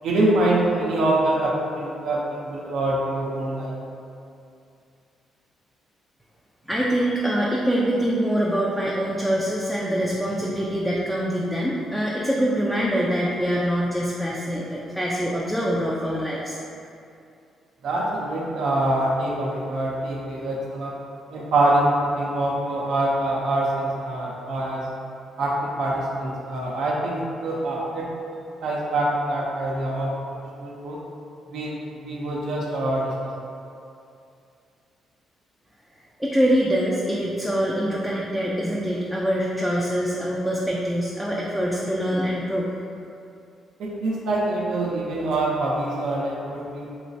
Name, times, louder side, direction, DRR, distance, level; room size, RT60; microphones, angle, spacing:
voice 1, 0.0-3.8 17.8-20.9 21.3-24.9 25.4-28.1 28.6-30.1 30.6-31.0 31.5-33.1 43.8-46.9, right 1 dB, 75° right, -4 dB, 0.5 m, -25 dB
voice 2, 6.7-16.6 36.2-42.7, equal, ahead, -5 dB, 0.3 m, -24 dB
3.1 x 3.0 x 2.6 m, 2.6 s
cardioid pair, 90°, 0 cm